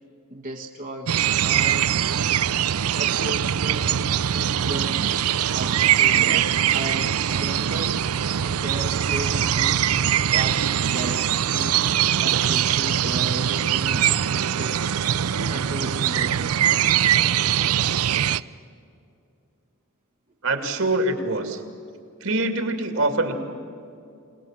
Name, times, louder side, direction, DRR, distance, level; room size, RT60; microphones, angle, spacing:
voice 1, 0.3-1.9 2.9-8.0 8.4-9.8 10.3-11.8 12.2-16.6, right 1 dB, 40° right, 1 dB, 1.3 m, -35 dB
sound 1, 1.1-18.4, right 10 dB, 85° right, 0.5 m, -22 dB
voice 2, 20.4-21.6 22.2-23.3, right 2 dB, 70° right, 6 dB, 2.6 m, -24 dB
27.0 x 19.5 x 7.5 m, 2.5 s
head